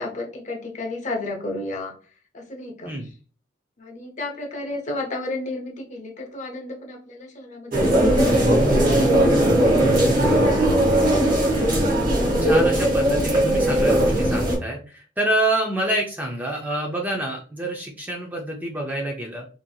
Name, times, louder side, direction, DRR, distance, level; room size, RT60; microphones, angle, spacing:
voice 1, 0.0-1.9 2.3-2.9 3.8-8.6, left 2 dB, 40° left, 2 dB, 0.6 m, -32 dB
sound 1, 7.7-14.6, right 1 dB, 45° right, 0.8 m, -18 dB
voice 2, 9.7-11.1 12.2-19.5, right 1 dB, 10° right, 0 dB, 0.4 m, -28 dB
2.9 x 2.6 x 2.2 m, 0.38 s
head